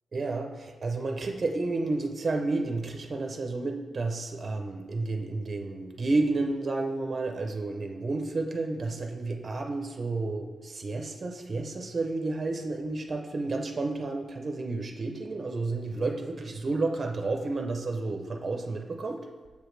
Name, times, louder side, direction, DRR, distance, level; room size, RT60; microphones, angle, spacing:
voice 1, 0.1-19.3, right 3 dB, 35° right, 3 dB, 0.4 m, -31 dB
6.7 x 4.9 x 3.1 m, 1.4 s
wide cardioid pair, 145°, 0 cm